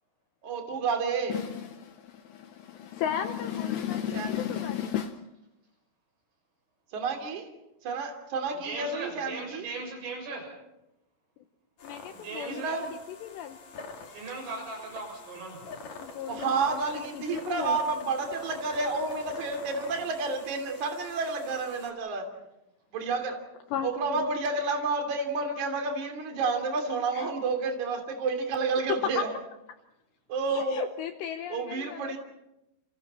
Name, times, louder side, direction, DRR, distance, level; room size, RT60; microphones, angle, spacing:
voice 1, 0.4-1.4 4.1-4.3 6.9-7.4 7.8-9.7 12.5-12.9 16.3-22.2 22.9-23.4 23.8-29.3 30.3-30.9 31.5-32.2, right 4 dB, 40° right, 4 dB, 3.8 m, -30 dB
voice 2, 1.3-5.2 11.8-13.6 16.0-17.8 23.7-24.4 27.1-27.3 28.9-29.3 30.4-32.2, left 9 dB, 75° left, 7 dB, 2.6 m, -34 dB
voice 3, 8.6-10.4 12.2-12.7 14.1-15.6, right 3 dB, 75° right, 1 dB, 9.7 m, -38 dB
sound 1, 11.8-21.9, left 4 dB, 45° left, 2.9 m, -45 dB
29.5 x 28.0 x 4.4 m, 0.90 s
omnidirectional pair, 5.9 m